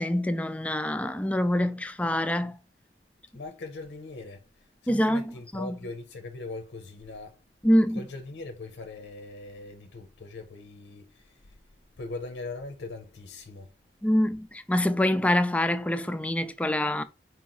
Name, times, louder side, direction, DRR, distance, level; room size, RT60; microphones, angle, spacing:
voice 1, 0.0-2.6 4.9-5.8 7.6-8.1 14.0-17.0, left 1 dB, 10° left, 0.3 m, -25 dB
voice 2, 3.3-7.4 7.9-11.5 12.0-13.7, left 3 dB, 85° left, 0.6 m, -41 dB
4.6 x 3.0 x 3.8 m
head